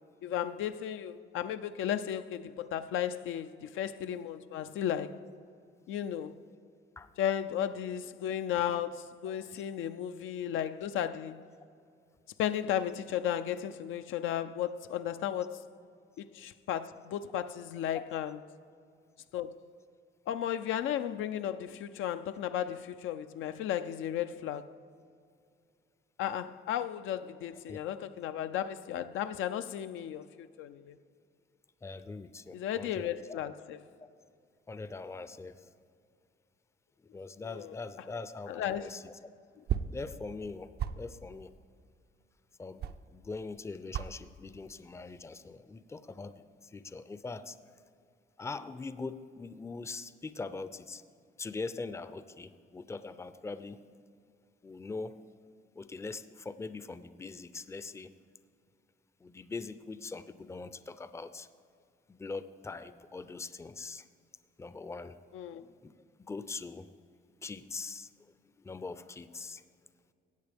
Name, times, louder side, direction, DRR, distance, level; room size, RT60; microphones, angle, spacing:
voice 1, 0.2-5.2 5.9-6.4 7.2-11.5 12.4-15.6 16.2-18.4 19.3-19.6 20.3-24.7 26.2-31.0 32.5-33.8 37.4-37.7 38.5-39.0 65.3-65.6, left 10 dB, 80° left, 0.4 m, -34 dB
voice 2, 31.8-33.0 33.3-33.4 34.7-35.5 37.1-39.1 39.9-40.7 40.9-41.5 42.6-47.6 48.4-51.0 51.4-53.8 54.6-55.2 55.8-58.1 59.2-61.5 62.1-64.1 64.6-65.2 65.6-65.9 66.3-66.9 67.4-68.1 68.6-69.6, left 3 dB, 15° left, 0.4 m, -42 dB
sound 1, 39.2-43.5 43.8-44.2 44.5-45.0 45.4-45.8, right 8 dB, 55° right, 0.4 m, -37 dB
15.5 x 8.0 x 3.4 m
cardioid pair, 90°, 20 cm